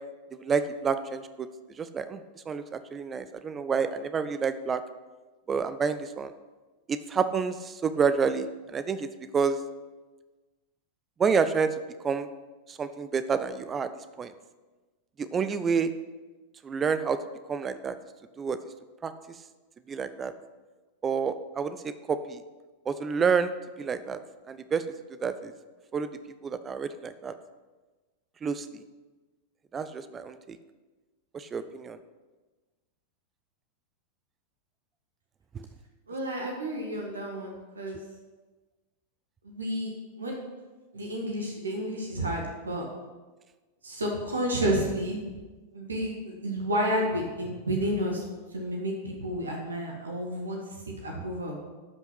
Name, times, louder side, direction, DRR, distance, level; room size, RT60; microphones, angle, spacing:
voice 1, 0.3-1.5 1.8-2.2 2.5-4.8 5.5-6.3 6.9-9.1 9.3-9.6 11.2-12.3 12.7-13.9 14.2-14.3 15.2-15.9 16.6-17.2 17.5-17.9 18.4-18.6 19.0-19.1 19.9-20.3 21.0-22.4 22.9-24.2 24.5-24.8 25.2-25.5 25.9-26.1 26.4-27.3 28.4-28.8 29.7-30.6 31.3-32.0 35.5-35.7, right 5 dB, 20° right, 12 dB, 0.6 m, -29 dB
voice 2, 36.1-38.0 39.4-39.9 40.2-40.4 40.9-42.9 43.8-45.2 45.7-48.3 48.5-51.5, equal, 75° right, 1 dB, 1.8 m, -31 dB
12.5 x 5.7 x 5.9 m, 1.3 s
figure-of-eight pair, 90°, 0 cm